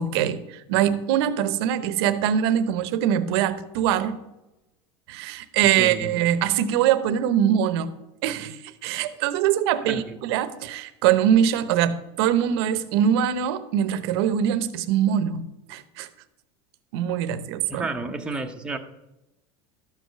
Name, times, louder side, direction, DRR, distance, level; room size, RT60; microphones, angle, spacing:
voice 1, 0.0-4.2 5.1-7.9 8.2-16.1 16.9-17.9, right 9 dB, 70° right, 12 dB, 0.8 m, -23 dB
voice 2, 5.6-6.1 9.8-10.2 17.7-18.8, right 3 dB, 5° right, 4 dB, 0.7 m, -31 dB
13.0 x 4.8 x 6.6 m, 0.96 s
supercardioid pair, 155°, 14 cm